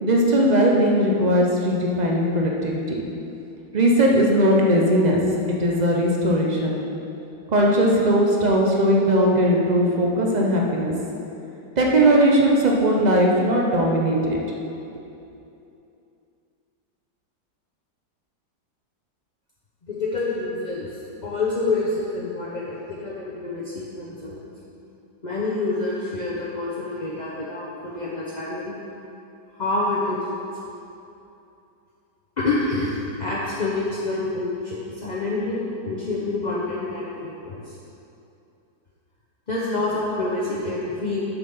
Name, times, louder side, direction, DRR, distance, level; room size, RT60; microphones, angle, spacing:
voice 1, 0.0-3.1 3.7-5.2 5.6-6.8 7.5-10.9 11.8-14.4, equal, 65° right, -2 dB, 0.4 m, -19 dB
voice 2, 19.9-24.5 25.2-28.7 29.5-30.5 32.4-37.7 39.5-41.2, left 2 dB, 40° left, -7 dB, 0.6 m, -27 dB
6.9 x 6.2 x 5.5 m, 2.8 s
omnidirectional pair, 1.9 m